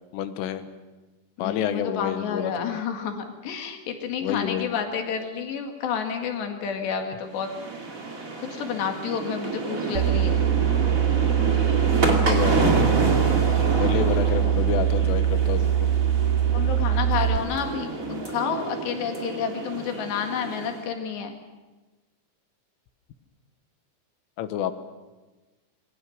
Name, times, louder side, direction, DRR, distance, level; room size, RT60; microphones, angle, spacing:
voice 1, 0.1-0.7 1.4-2.8 4.2-4.7 11.9-12.9 13.8-15.9 24.4-24.8, left 10 dB, 85° left, 10 dB, 3.8 m, -29 dB
voice 2, 1.4-7.5 8.4-10.4 14.3-14.5 16.5-21.3, left 7 dB, 65° left, 4 dB, 3.8 m, -30 dB
sound 1, 7.3-20.8, right 3 dB, 30° right, 1.7 m, -29 dB
sound 2, 9.9-17.4, right 10 dB, 70° right, 2.0 m, -22 dB
27.0 x 22.0 x 6.5 m, 1.2 s
omnidirectional pair, 5.7 m